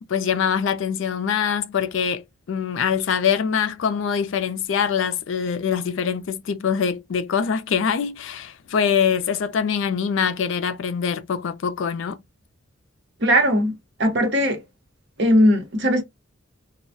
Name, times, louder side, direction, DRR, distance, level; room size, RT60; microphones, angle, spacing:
voice 1, 0.1-12.2, left 7 dB, 70° left, 0.4 m, -24 dB
voice 2, 13.2-13.7 14.0-14.6 15.2-16.0, equal, 55° right, 0.9 m, -18 dB
2.2 x 2.1 x 2.6 m
head